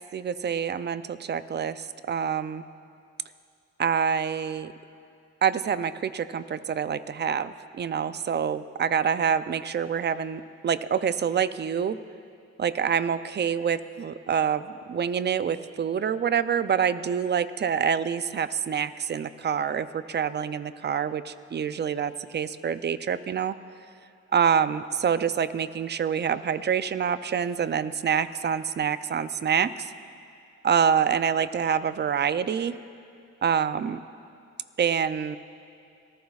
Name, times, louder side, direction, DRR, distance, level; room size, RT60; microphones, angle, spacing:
voice 1, 0.1-2.6 3.8-4.7 5.4-12.0 12.6-23.5 24.3-29.9 30.6-32.7 33.4-34.0 34.8-35.4, right 7 dB, 35° right, 14 dB, 0.5 m, -26 dB
25.0 x 14.5 x 2.4 m, 2.4 s
cardioid pair, 90°, 30 cm